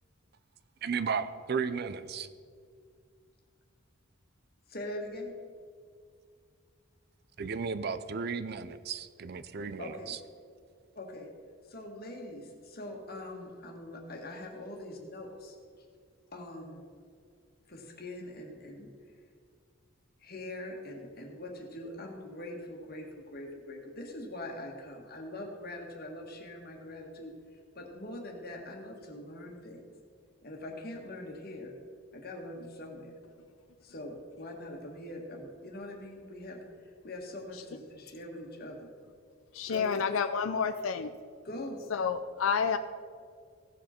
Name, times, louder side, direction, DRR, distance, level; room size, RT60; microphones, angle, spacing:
voice 1, 0.8-2.3 7.4-10.2, right 5 dB, 50° right, 0.5 m, -34 dB
voice 2, 4.7-5.3 9.8-10.1 10.9-11.3 11.6-15.8 16.3-16.9 17.7-18.9 20.2-27.3 27.7-29.9 30.4-31.7 32.1-33.1 33.8-38.9 39.7-40.1 41.4-41.8, left 1 dB, 45° left, 1.7 m, -43 dB
voice 3, 39.5-41.2 41.9-42.8, left 6 dB, 75° left, 0.4 m, -29 dB
16.5 x 7.4 x 4.4 m
head